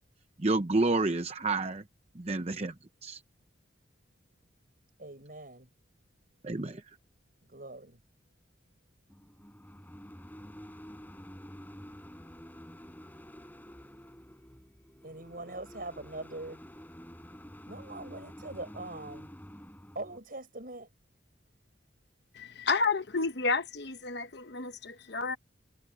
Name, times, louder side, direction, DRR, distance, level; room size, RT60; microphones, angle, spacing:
voice 1, 0.4-1.8 2.1-2.7 3.0-3.2 6.4-6.8, right 3 dB, 35° right, 0.7 m, -29 dB
voice 2, 5.0-5.7 7.5-8.0 15.0-16.6 17.7-19.3 20.0-20.9, right 2 dB, 50° right, 5.5 m, -42 dB
sound 1, 9.1-20.2, equal, 10° left, 4.9 m, -49 dB
voice 3, 22.3-25.4, left 4 dB, 60° left, 1.1 m, -31 dB
head